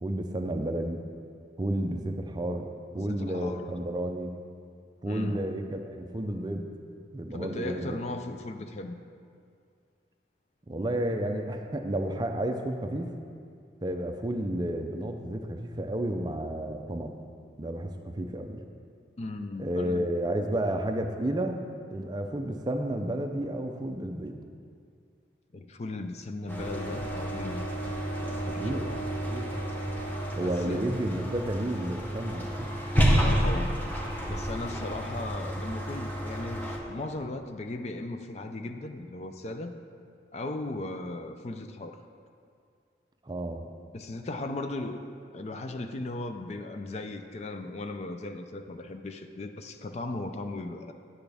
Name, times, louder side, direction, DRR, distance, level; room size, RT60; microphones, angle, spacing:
voice 1, 0.0-1.0 1.6-4.3 5.0-6.7 7.1-8.0 10.7-13.1 13.8-17.2 17.6-18.7 19.6-21.6 21.9-24.4 28.2-28.9 29.3-29.5 30.4-32.7 43.2-43.7, right 1 dB, 25° right, 5 dB, 0.5 m, -31 dB
voice 2, 3.0-3.7 5.1-5.5 7.3-9.0 19.2-20.1 25.5-27.6 28.5-29.0 30.4-30.9 33.2-33.8 34.3-39.7 40.3-42.0 43.9-45.0 45.3-50.9, left 2 dB, 35° left, 6 dB, 0.4 m, -37 dB
sound 1, 26.5-36.8, equal, 10° left, 0.9 m, -30 dB
9.6 x 8.4 x 3.4 m, 2.3 s
head